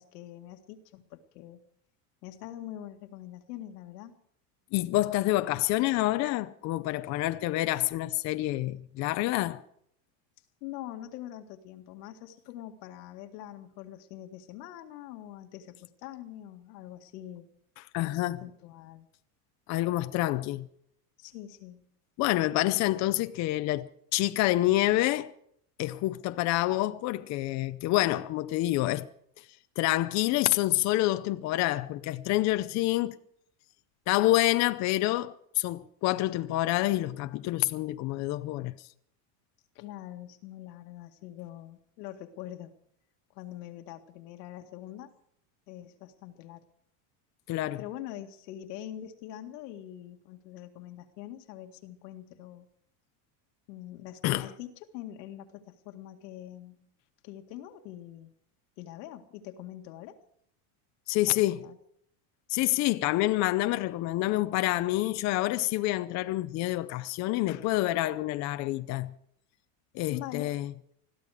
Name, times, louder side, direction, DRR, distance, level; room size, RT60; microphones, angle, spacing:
voice 1, 0.0-1.6 2.2-4.1 10.6-17.5 18.0-19.1 21.2-21.8 39.8-42.7 43.3-45.1 45.7-46.6 47.8-52.7 53.7-56.8 57.2-58.3 58.8-60.2 61.3-61.8 70.1-70.5, left 12 dB, 85° left, 2.0 m, -44 dB
voice 2, 4.7-9.6 17.9-18.4 19.7-20.7 22.2-25.3 25.8-29.1 29.8-33.2 34.1-38.8 47.5-47.8 54.2-54.5 61.1-61.6 62.5-69.1 69.9-70.7, left 16 dB, 35° left, 0.6 m, -27 dB
21.0 x 14.0 x 4.9 m
cardioid pair, 160°, 47 cm